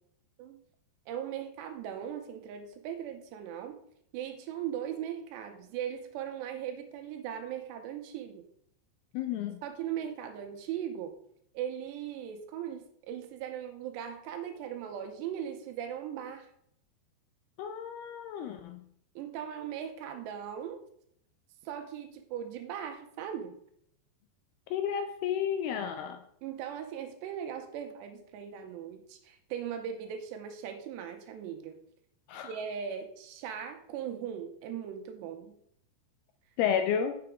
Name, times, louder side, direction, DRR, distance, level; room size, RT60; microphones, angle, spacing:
voice 1, 1.1-3.8 4.1-8.5 9.6-11.2 11.5-16.5 19.2-20.8 21.6-23.5 26.4-31.8 32.3-35.5, right 9 dB, 85° right, 6 dB, 2.9 m, -39 dB
voice 2, 9.1-9.6 17.6-18.9 24.7-26.2 32.3-32.5 36.6-37.1, left 8 dB, 85° left, 6 dB, 2.3 m, -31 dB
6.9 x 6.7 x 3.5 m, 0.69 s
omnidirectional pair, 5.0 m